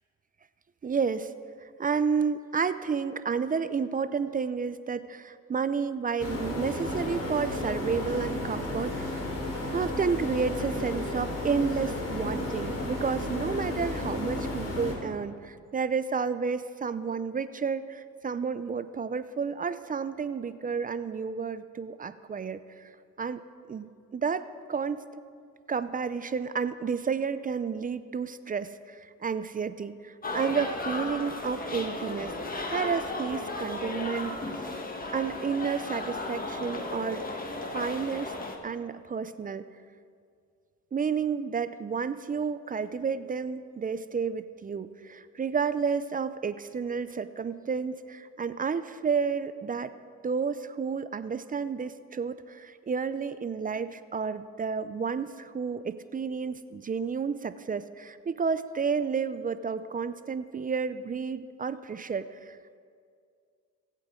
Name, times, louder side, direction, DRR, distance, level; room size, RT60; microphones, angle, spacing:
voice 1, 0.8-1.3 1.6-9.2 9.7-22.9 23.2-23.4 23.7-25.0 25.7-34.7 35.1-37.3 37.7-38.3 38.6-39.6 40.9-49.9 50.2-62.8, right 6 dB, 30° right, 13 dB, 0.5 m, -31 dB
sound 1, 6.2-14.9, left 1 dB, 55° left, 3.8 m, -33 dB
sound 2, 30.2-38.6, left 2 dB, 30° left, 1.5 m, -35 dB
23.5 x 8.4 x 3.8 m, 2.2 s
cardioid pair, 90°, 30 cm